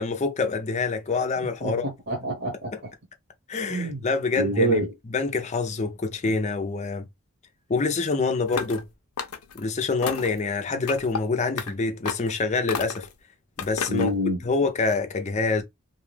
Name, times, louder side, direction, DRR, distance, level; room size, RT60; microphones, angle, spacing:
voice 1, 0.0-1.9 2.7-2.8 3.5-4.8 5.1-7.1 7.7-8.8 9.5-13.1 13.6-14.1 14.4-15.6, left 4 dB, 30° left, 0.5 m, -26 dB
voice 2, 1.6-2.7 3.7-4.1 4.4-4.9 13.9-14.4, right 1 dB, 50° right, 0.9 m, -26 dB
sound 1, 8.5-8.8 9.2-9.6 10.0-10.4 10.9-11.2 11.6-11.7 12.0-12.3 12.7-13.1 13.6-14.1, left 6 dB, 90° left, 0.6 m, -32 dB
2.6 x 2.3 x 3.2 m
head